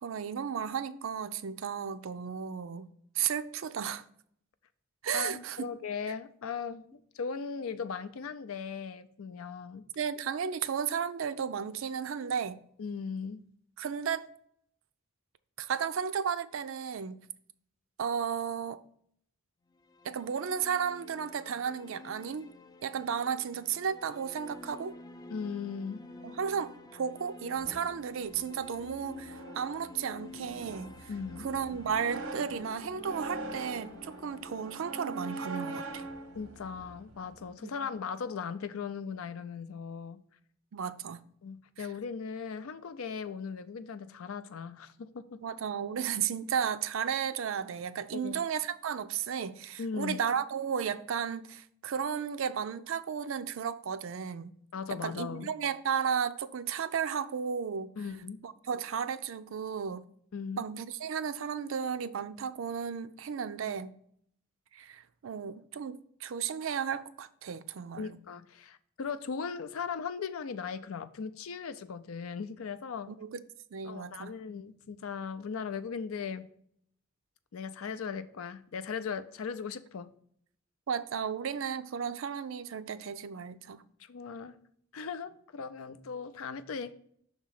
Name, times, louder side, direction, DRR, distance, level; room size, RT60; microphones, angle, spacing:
voice 1, 0.0-2.9 3.2-4.0 5.0-5.7 10.0-12.6 13.8-14.3 15.6-17.2 18.0-18.8 20.0-22.5 22.8-24.9 26.2-31.1 31.4-36.0 37.6-37.7 40.7-41.2 41.8-41.9 45.4-54.5 54.9-57.9 58.4-60.1 60.6-63.9 64.7-68.2 73.1-73.4 73.7-74.3 80.9-83.8, right 7 dB, 70° right, 0.4 m, -34 dB
voice 2, 5.1-9.8 12.8-13.4 25.3-26.0 31.1-31.5 36.3-40.2 41.4-45.4 48.1-48.5 49.8-50.2 54.7-55.5 58.0-58.4 60.3-60.6 68.0-73.1 73.8-76.5 77.5-80.1 84.0-84.6 84.9-86.9, left 6 dB, 85° left, 0.5 m, -38 dB
sound 1, 19.7-37.7, left 3 dB, 20° left, 0.3 m, -50 dB
sound 2, 27.6-37.5, right 3 dB, 90° right, 0.9 m, -43 dB
6.0 x 3.6 x 5.7 m
head